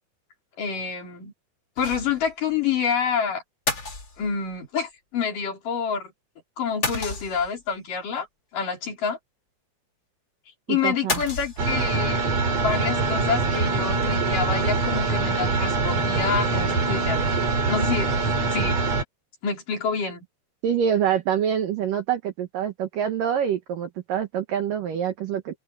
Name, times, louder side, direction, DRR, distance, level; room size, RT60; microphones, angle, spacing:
voice 1, 0.6-1.3 1.8-3.4 4.2-6.1 6.6-8.3 8.5-9.2 10.7-12.2 12.6-17.2 17.7-18.2 18.5-18.8 19.4-20.3, left 6 dB, 45° left, 5.7 m, -27 dB
sound 1, 1.8-2.3 2.6-2.7 3.7-4.5 6.8-7.7 11.1-12.0, left 3 dB, 25° left, 3.7 m, -30 dB
voice 2, 10.7-11.2 20.6-25.6, right 9 dB, 70° right, 2.1 m, -26 dB
sound 2, 11.6-19.0, right 3 dB, 40° right, 4.1 m, -24 dB
omnidirectional pair, 5.5 m